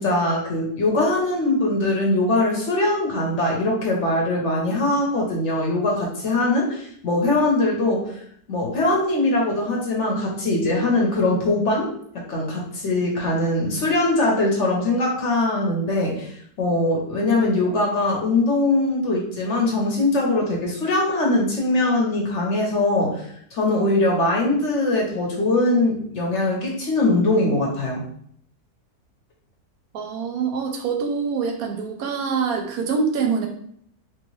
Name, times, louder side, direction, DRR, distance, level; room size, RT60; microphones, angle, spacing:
voice 1, 0.0-8.1 8.5-11.9 12.1-23.3 23.5-28.0, left 2 dB, 55° left, -2 dB, 1.0 m, -21 dB
voice 2, 29.9-33.5, right 5 dB, 75° right, 2 dB, 1.0 m, -25 dB
3.1 x 2.8 x 3.0 m, 0.65 s
omnidirectional pair, 1.6 m